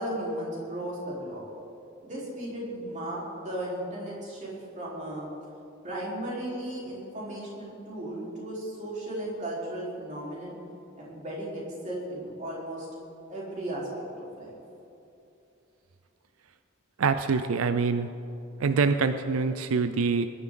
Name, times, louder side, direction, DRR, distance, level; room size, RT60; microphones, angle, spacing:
voice 1, 0.0-1.5 2.0-5.3 5.8-10.6 11.0-12.9 13.3-13.9 14.4-14.5, right 1 dB, 35° right, -6 dB, 4.0 m, -35 dB
voice 2, 17.0-18.1 18.6-20.3, right 4 dB, 85° right, 10 dB, 0.5 m, -25 dB
21.0 x 11.0 x 3.9 m, 2.8 s
head